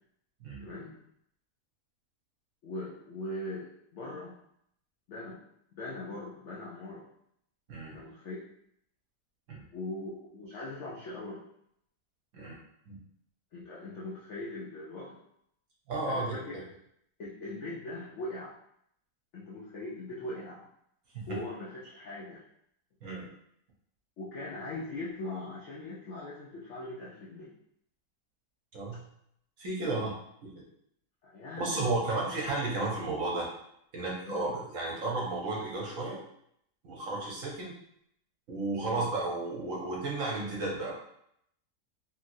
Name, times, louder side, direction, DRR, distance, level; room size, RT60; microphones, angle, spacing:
voice 1, 0.6-0.9 2.6-4.4 5.1-5.4 5.7-7.1 7.9-8.4 9.7-11.4 13.5-15.2 16.1-16.6 17.2-18.6 19.3-20.7 21.3-22.4 24.2-27.5 28.9-29.0 29.9-30.0 31.2-32.1 34.2-34.5 38.8-39.1, left 2 dB, 75° left, -5 dB, 0.6 m, -40 dB
voice 2, 7.7-8.0 9.5-9.6 12.3-12.6 12.9-13.0 15.9-16.6 21.1-21.4 23.0-23.3 28.7-29.0 29.6-30.1 30.4-30.5 31.6-33.5 33.9-36.2 36.8-37.7 38.5-40.9, right 2 dB, 60° right, -3 dB, 1.0 m, -33 dB
2.9 x 2.8 x 2.5 m, 0.72 s
omnidirectional pair, 1.8 m